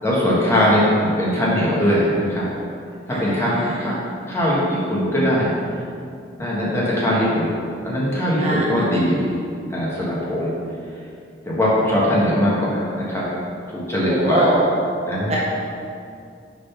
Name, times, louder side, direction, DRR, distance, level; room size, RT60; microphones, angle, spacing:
voice 1, 0.0-2.5 3.1-3.9 4.3-5.5 6.4-7.6 7.8-9.3 9.7-10.5 11.4-13.2 13.7-14.5 15.1-15.4, equal, 15° left, -7 dB, 1.4 m, -20 dB
voice 2, 3.1-3.8 8.4-8.8 14.1-14.6 15.3-15.4, right 1 dB, 35° right, -5 dB, 1.0 m, -23 dB
6.7 x 4.0 x 5.7 m, 2.4 s
head